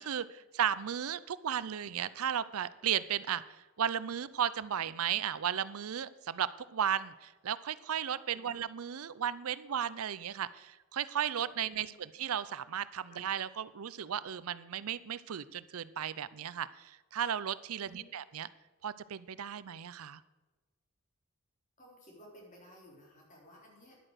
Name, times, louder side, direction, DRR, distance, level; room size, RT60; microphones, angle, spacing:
voice 1, 0.0-18.5 18.8-20.2, right 9 dB, 80° right, 16 dB, 0.5 m, -35 dB
voice 2, 11.6-12.1 13.1-13.2 17.8-18.1 21.8-24.0, equal, 35° left, -1 dB, 3.6 m, -57 dB
11.0 x 8.8 x 6.5 m, 1.2 s
head